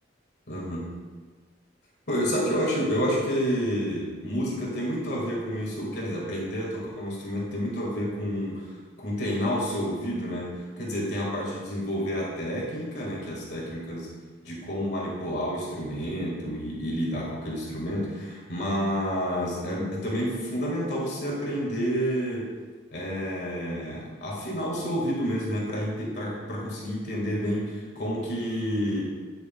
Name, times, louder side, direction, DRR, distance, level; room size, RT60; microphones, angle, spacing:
voice 1, 0.5-0.9 2.1-8.7 9.0-14.1 14.4-22.5 22.9-29.0, equal, 65° left, -4 dB, 1.8 m, -29 dB
9.0 x 6.4 x 2.2 m, 1.5 s
head